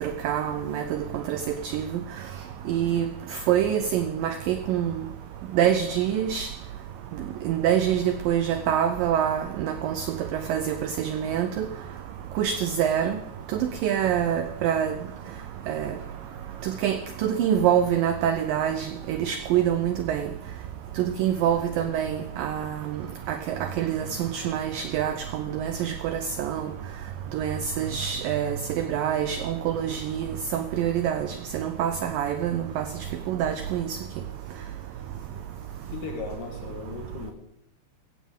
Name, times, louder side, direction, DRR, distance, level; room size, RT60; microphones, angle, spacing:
voice 1, 0.0-1.4 1.7-2.0 2.7-3.1 3.5-4.9 5.6-6.5 7.5-10.1 10.3-11.7 12.4-13.2 13.8-14.9 15.7-15.9 16.6-17.0 17.2-20.3 21.0-22.7 23.3-26.6 27.3-30.3 30.5-31.3 31.5-32.8 33.3-33.9, right 9 dB, 85° right, 9 dB, 2.0 m, -25 dB
voice 2, 35.9-37.3, left 4 dB, 60° left, 3 dB, 2.8 m, -36 dB
16.0 x 15.0 x 3.7 m, 0.82 s
omnidirectional pair, 4.8 m